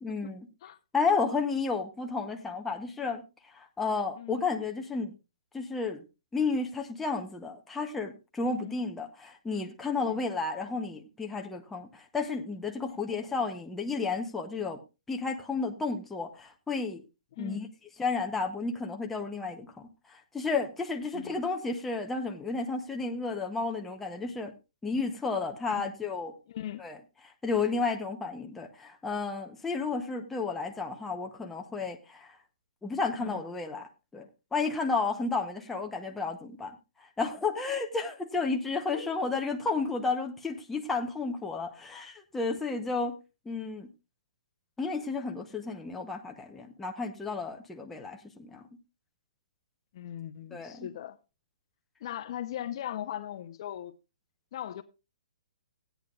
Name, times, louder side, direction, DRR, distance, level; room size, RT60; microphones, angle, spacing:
voice 1, 0.0-0.5 0.9-3.2 3.5-5.1 5.5-6.0 6.3-14.8 15.1-17.0 17.4-17.7 18.0-24.5 24.8-26.4 26.8-27.0 27.2-32.4 32.8-43.2 43.5-43.9 44.8-48.7 50.5-50.9, left 4 dB, 5° left, 0.8 m, -32 dB
voice 2, 17.3-17.7 21.1-21.4 25.7-26.0 26.5-26.8 33.2-33.4 38.9-39.1 49.9-51.2 52.0-54.0 54.5-54.8, left 11 dB, 45° left, 0.7 m, -39 dB
16.5 x 9.1 x 2.4 m
hypercardioid pair, 155°, 4 cm